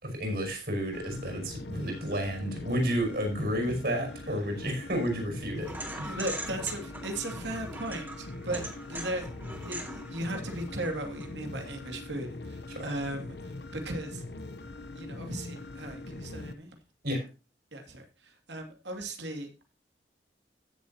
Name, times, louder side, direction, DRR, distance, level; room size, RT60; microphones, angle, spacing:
voice 1, 0.0-5.7 6.0-6.2 12.7-12.9 17.0-17.3, equal, 60° right, 3 dB, 5.7 m, -31 dB
sound 1, 0.9-16.5, left 2 dB, 70° left, 0.9 m, -42 dB
sound 2, 5.6-11.3, right 1 dB, 10° right, 2.2 m, -42 dB
voice 2, 6.0-9.3 9.6-14.2 14.9-16.7 17.7-19.5, right 1 dB, 90° right, 4 dB, 2.6 m, -37 dB
16.0 x 7.3 x 2.9 m, 0.30 s
head